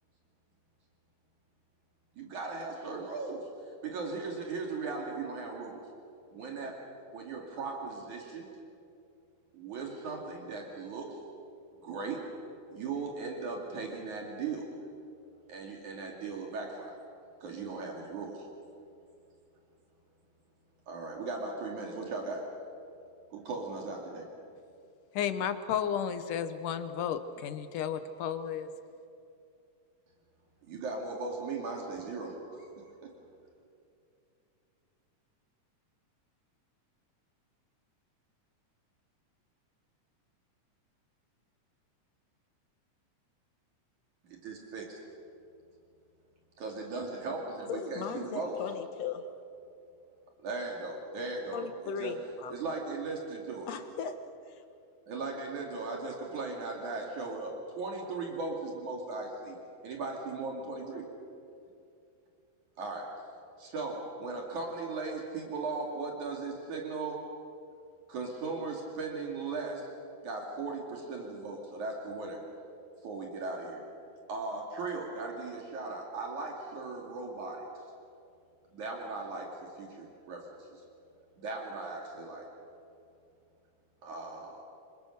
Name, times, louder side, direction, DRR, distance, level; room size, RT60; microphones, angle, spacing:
voice 1, 2.2-3.5 3.8-5.8 6.3-6.7 7.1-8.5 9.5-11.2 11.8-12.2 12.7-14.7 15.5-17.0 17.4-18.5 20.9-22.4 23.3-24.3 30.7-32.7 33.0-33.1 44.2-45.0 46.6-48.5 50.4-52.2 52.5-53.7 55.1-59.6 59.8-61.0 62.8-63.1 63.6-67.2 68.1-69.9 70.2-72.4 73.0-73.8 74.3-77.6 78.7-80.8 81.4-82.5 84.0-84.6, right 3 dB, 70° right, 0 dB, 4.0 m, -38 dB
voice 2, 25.1-28.7, left 8 dB, 80° left, 10 dB, 2.7 m, -33 dB
voice 3, 47.7-49.2 51.5-52.5 53.7-54.2, left 6 dB, 60° left, 7 dB, 2.4 m, -37 dB
27.5 x 25.0 x 6.6 m, 2.6 s
omnidirectional pair, 3.6 m